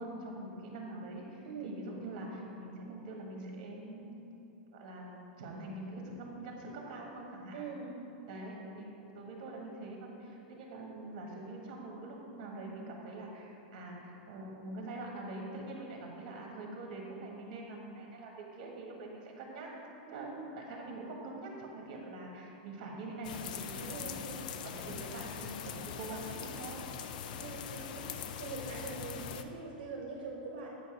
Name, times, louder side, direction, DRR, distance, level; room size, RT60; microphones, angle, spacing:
voice 1, 0.0-4.2 4.7-7.7 8.3-24.1 24.6-26.8, right 2 dB, 45° right, -1 dB, 1.4 m, -44 dB
voice 2, 1.4-1.8 7.5-7.9 20.1-20.4 23.9-24.4 27.4-30.7, right 4 dB, 70° right, -2 dB, 0.9 m, -43 dB
sound 1, 23.2-29.4, left 7 dB, 60° left, 0.4 m, -42 dB
8.1 x 4.0 x 5.0 m, 2.9 s
supercardioid pair, 165°, 5 cm